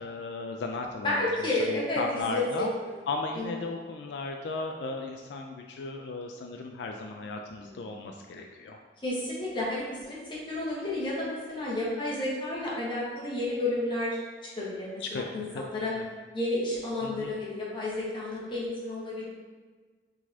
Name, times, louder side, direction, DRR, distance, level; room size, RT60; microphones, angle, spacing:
voice 1, 0.0-2.7 3.1-8.8 15.0-16.0 17.0-17.4, left 3 dB, 80° left, 3 dB, 0.3 m, -36 dB
voice 2, 1.0-2.0 2.3-2.9 3.3-3.7 7.6-8.0 9.0-10.2 10.5-14.2 14.6-15.9 16.3-19.2, left 2 dB, 30° left, -6 dB, 1.3 m, -31 dB
4.8 x 4.0 x 2.8 m, 1.4 s
head